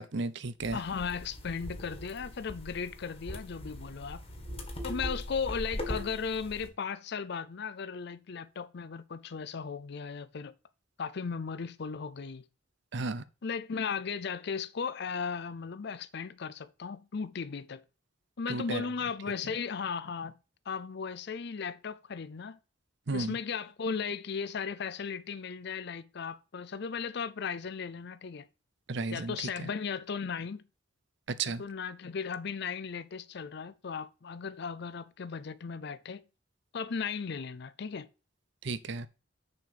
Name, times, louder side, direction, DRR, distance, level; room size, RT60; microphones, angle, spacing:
voice 1, 0.0-0.8 12.9-13.2 18.5-18.8 23.1-23.3 28.9-29.7 31.3-31.6 38.6-39.1, right 3 dB, 65° right, 0.7 m, -34 dB
sound 1, 0.6-6.7, left 1 dB, 30° left, 1.6 m, -40 dB
voice 2, 0.7-4.2 4.8-10.5 11.0-12.4 13.4-17.8 18.4-20.4 20.7-22.6 23.1-28.5 29.1-30.6 31.5-36.2 36.7-38.1, left 6 dB, 60° left, 0.5 m, -36 dB
6.7 x 5.1 x 6.8 m
head